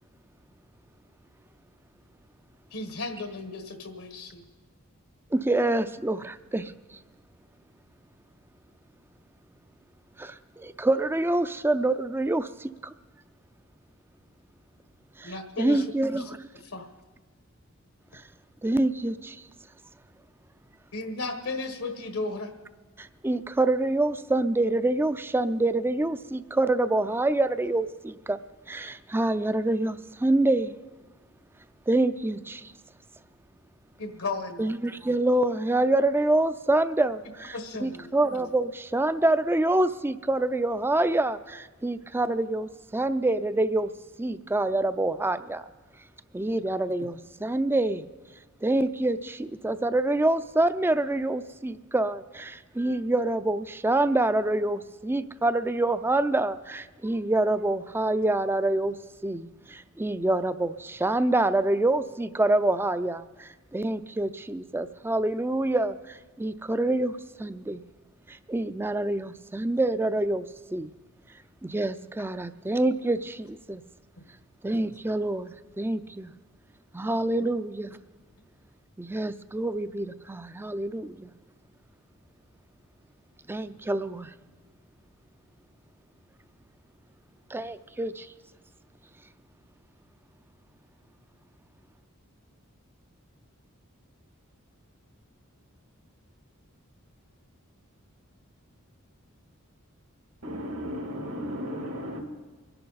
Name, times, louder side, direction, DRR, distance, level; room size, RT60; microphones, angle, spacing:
voice 1, 2.7-4.4 15.2-16.4 16.6-16.9 20.9-22.5 34.0-34.6 37.5-38.1 74.2-74.3, left 3 dB, 80° left, 1.4 m, -35 dB
voice 2, 5.3-6.7 10.2-12.9 15.2-16.5 18.6-19.4 23.0-28.4 28.7-30.7 31.9-32.7 34.6-37.6 37.8-43.9 44.2-45.6 46.3-48.0 48.6-59.0 59.2-67.8 68.3-70.9 71.6-73.8 74.6-76.3 76.9-78.0 79.0-81.3 83.5-84.3 87.5-88.3, right 2 dB, 10° right, 0.4 m, -26 dB
voice 3, 100.4-102.2, equal, 75° right, 2.4 m, -34 dB
25.0 x 11.0 x 4.1 m
head